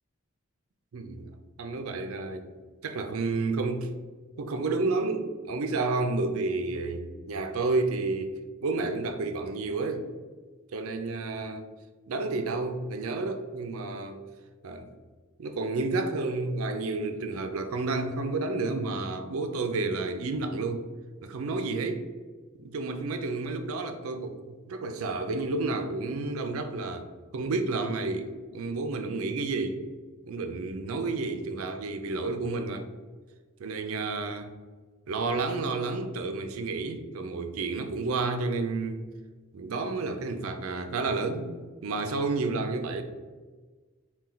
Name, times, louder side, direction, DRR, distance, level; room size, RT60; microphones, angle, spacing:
voice 1, 0.9-1.3 1.6-2.5 2.8-3.9 4.4-10.1 10.7-11.7 12.1-14.2 14.6-14.9 15.4-20.8 21.2-22.0 22.6-24.4 24.7-27.1 27.3-29.8 30.2-32.9 33.6-34.5 35.1-39.0 39.5-43.0, right 3 dB, 80° right, 7 dB, 0.4 m, -30 dB
4.3 x 2.3 x 3.8 m, 1.4 s
head